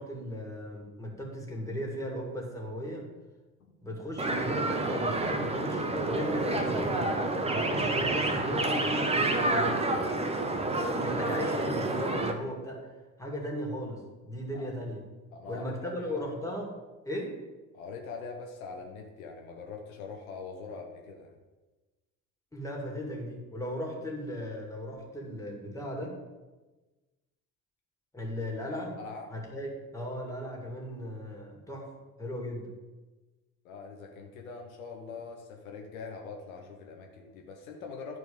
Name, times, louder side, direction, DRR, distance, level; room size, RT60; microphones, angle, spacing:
voice 1, 0.0-3.1 3.8-9.8 10.9-12.9 13.2-15.0 15.5-16.7 17.0-17.4 22.5-26.2 28.1-29.0 29.3-31.9 32.2-32.7, equal, 5° left, -1 dB, 2.3 m, -37 dB
sound 1, 4.2-12.3, right 2 dB, 15° right, 0.9 m, -29 dB
voice 2, 15.3-16.3 17.7-21.4 25.2-25.3 28.6-29.3 33.6-38.2, left 4 dB, 70° left, 2 dB, 1.1 m, -43 dB
11.0 x 4.6 x 5.0 m, 1.2 s
figure-of-eight pair, 55°, 44 cm